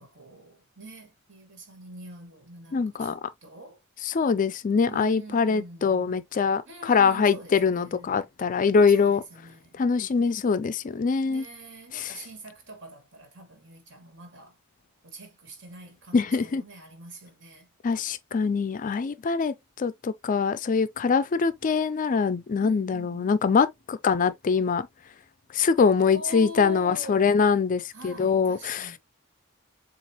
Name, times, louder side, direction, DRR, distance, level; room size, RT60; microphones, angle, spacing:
voice 1, 0.0-3.8 4.8-6.2 6.7-8.3 8.9-9.8 11.2-14.6 15.0-17.7 22.6-23.4 26.0-27.4 27.9-29.0, right 1 dB, 60° right, 1.9 m, -44 dB
voice 2, 2.7-3.2 4.0-9.2 9.8-11.4 11.9-12.1 16.1-16.6 17.8-24.9 25.5-28.9, left 5 dB, 40° left, 0.4 m, -23 dB
7.3 x 2.5 x 2.9 m
head